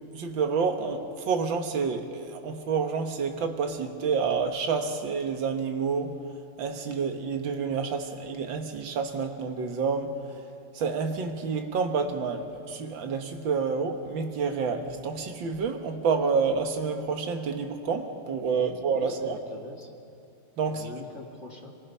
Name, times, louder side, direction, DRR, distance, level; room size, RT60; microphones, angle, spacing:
voice 1, 0.1-6.2 6.6-10.1 10.7-19.4 20.6-20.8, right 5 dB, 60° right, 5 dB, 2.1 m, -29 dB
voice 2, 18.5-19.9 20.6-21.7, left 2 dB, 30° left, -1 dB, 2.3 m, -44 dB
29.5 x 19.5 x 5.5 m, 2.5 s
omnidirectional pair, 2.4 m